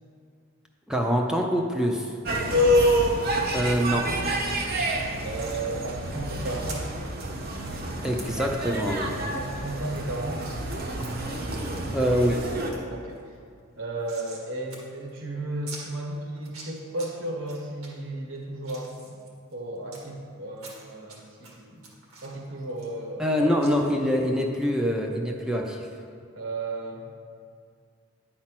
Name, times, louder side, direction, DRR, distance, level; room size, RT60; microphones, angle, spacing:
voice 1, 0.9-2.1 3.5-4.1 8.0-9.1 11.9-12.4 23.2-25.9, equal, 5° right, 1 dB, 0.5 m, -25 dB
sound 1, 2.3-12.7, equal, 45° right, 0.9 m, -27 dB
voice 2, 5.2-7.0 9.3-10.5 12.9-13.2 13.8-19.2 19.5-21.9 22.2-23.3 26.3-27.1, right 2 dB, 65° right, 0 dB, 1.3 m, -34 dB
sound 2, 5.4-5.6 6.7-6.8 7.5-7.7 8.2-8.3 8.7-8.9 9.3-9.4 9.6-9.7 10.4-10.6 11.1-11.6 12.1-12.4 12.7-12.8 13.1-14.5 14.7-14.8 15.1-15.2 15.7-15.8 16.4-17.1 17.5-17.9 18.4-20.0 20.6-21.2 21.4-23.3 23.6-23.7, right 3 dB, 85° right, 2.0 m, -44 dB
10.0 x 4.3 x 6.0 m, 2.2 s
head